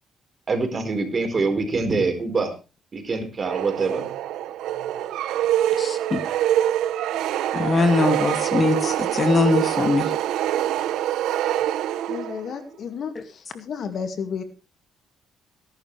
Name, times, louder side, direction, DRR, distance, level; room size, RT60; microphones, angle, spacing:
voice 1, 0.5-2.5 2.9-4.0, right 3 dB, 40° right, 5 dB, 4.7 m, -24 dB
sound 1, 3.4-12.5, right 12 dB, 90° right, 0.9 m, -25 dB
voice 2, 5.8-6.2 7.5-10.1, left 3 dB, 35° left, 6 dB, 2.5 m, -21 dB
voice 3, 12.1-14.4, left 6 dB, 60° left, 7 dB, 2.2 m, -32 dB
19.0 x 11.5 x 3.4 m, 0.32 s
cardioid pair, 90°, 0 cm